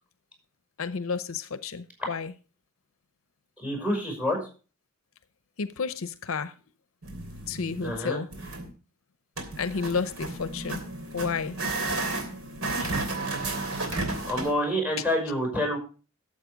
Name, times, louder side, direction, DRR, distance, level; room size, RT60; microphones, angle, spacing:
voice 1, 0.8-2.3 5.6-6.5 7.5-8.3 9.6-10.8 11.1-11.6 12.8-13.1 13.5-13.9, left 5 dB, 70° left, 0.7 m, -32 dB
voice 2, 3.6-4.4 7.8-8.2 14.2-15.8, equal, 5° right, 5.8 m, -27 dB
sound 1, 7.0-8.0 8.3-8.7 9.4-14.5, right 2 dB, 85° right, 3.0 m, -33 dB
12.5 x 7.6 x 5.1 m
head